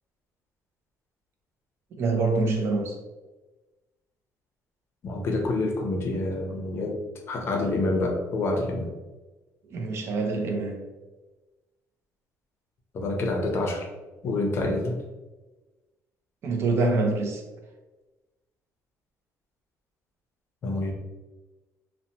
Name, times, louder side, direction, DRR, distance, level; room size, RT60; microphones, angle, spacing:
voice 1, 2.0-3.0 9.7-10.9 16.4-17.4, right 3 dB, 50° right, 3 dB, 0.4 m, -25 dB
voice 2, 5.0-7.0 7.3-8.9 12.9-13.9 14.2-15.0 20.6-20.9, left 2 dB, 45° left, 1 dB, 0.5 m, -27 dB
2.7 x 2.0 x 2.7 m, 1.1 s
cardioid pair, 145°, 6 cm